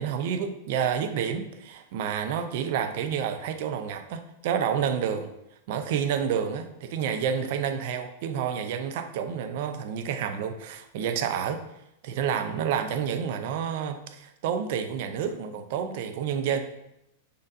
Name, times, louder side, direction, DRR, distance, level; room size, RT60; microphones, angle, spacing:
voice 1, 0.0-5.3 5.7-11.6 12.0-16.6, right 8 dB, 60° right, 8 dB, 0.5 m, -29 dB
5.0 x 4.1 x 2.5 m, 0.84 s
hypercardioid pair, 100°, 0 cm